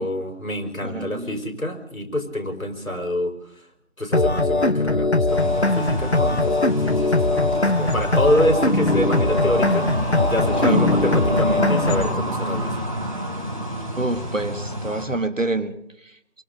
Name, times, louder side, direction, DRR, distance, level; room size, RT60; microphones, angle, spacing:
voice 1, 0.0-3.7 4.0-12.9, left 1 dB, 85° left, 4 dB, 5.0 m, -26 dB
voice 2, 0.8-1.4 10.6-10.8 14.0-15.8 16.0-16.1, right 2 dB, 70° right, 12 dB, 1.8 m, -27 dB
sound 1, 4.1-12.1, left 2 dB, 55° left, 1.1 m, -21 dB
sound 2, 5.3-15.0, equal, 25° right, 4.5 m, -28 dB
28.5 x 24.0 x 4.0 m, 0.73 s
figure-of-eight pair, 180°, 40 cm